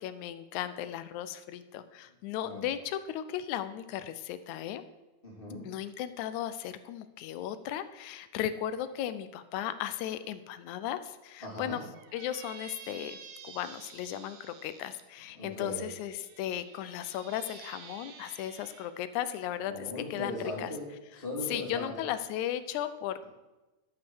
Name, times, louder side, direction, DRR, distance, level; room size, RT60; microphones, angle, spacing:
voice 1, 0.0-4.8 5.7-11.8 12.1-13.2 13.4-19.7 20.1-20.7 21.5-23.2, left 11 dB, 85° left, 12 dB, 2.0 m, -36 dB
voice 2, 5.2-5.7 11.4-11.8 15.3-15.8 19.7-20.9 21.2-22.1, left 1 dB, 20° left, -4 dB, 2.6 m, -38 dB
Squeak, 11.9-15.0 15.8-18.9, right 6 dB, 85° right, 1.0 m, -50 dB
11.5 x 5.8 x 6.2 m, 1.1 s
omnidirectional pair, 3.4 m